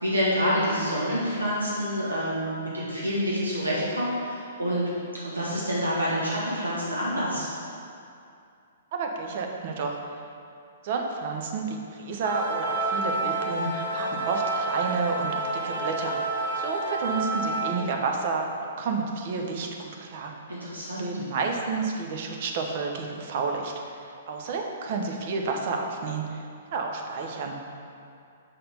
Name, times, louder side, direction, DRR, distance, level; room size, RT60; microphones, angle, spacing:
voice 1, 0.0-4.9 5.2-7.5 20.5-21.1, equal, 85° right, -8 dB, 1.5 m, -27 dB
voice 2, 8.9-10.0 10.8-16.2 16.6-18.5 18.8-20.3 21.0-26.4 26.7-27.6, right 4 dB, 45° right, 2 dB, 0.8 m, -30 dB
sound 1, 12.2-17.7, right 2 dB, 70° right, 1.1 m, -29 dB
5.4 x 4.2 x 5.3 m, 2.5 s
figure-of-eight pair, 115°, 0 cm